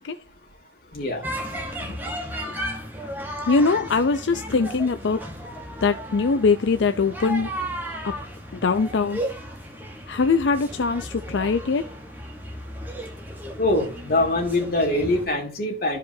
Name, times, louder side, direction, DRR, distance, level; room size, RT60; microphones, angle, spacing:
voice 1, 0.9-1.3 13.6-16.0, left 2 dB, 55° left, 2.5 m, -23 dB
sound 1, 1.2-15.3, equal, 10° right, 1.2 m, -34 dB
voice 2, 2.4-3.1 3.5-5.2 5.8-7.5 8.0-8.1 8.5-9.2 10.1-11.9, left 4 dB, 85° left, 0.5 m, -22 dB
13.0 x 4.9 x 2.7 m
head